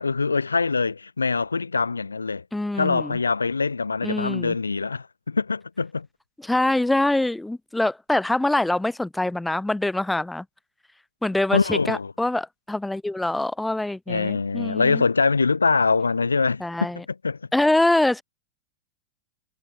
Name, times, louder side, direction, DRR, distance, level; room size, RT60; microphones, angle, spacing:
voice 1, 0.0-2.4 2.7-6.1 11.5-12.1 14.1-17.4, left 4 dB, 75° left, 1.3 m, -24 dB
voice 2, 2.5-3.2 4.0-4.5 6.4-10.4 11.2-15.0 16.6-17.0 17.5-18.2, left 2 dB, 5° left, 0.5 m, -24 dB
figure-of-eight pair, 90°, 0 cm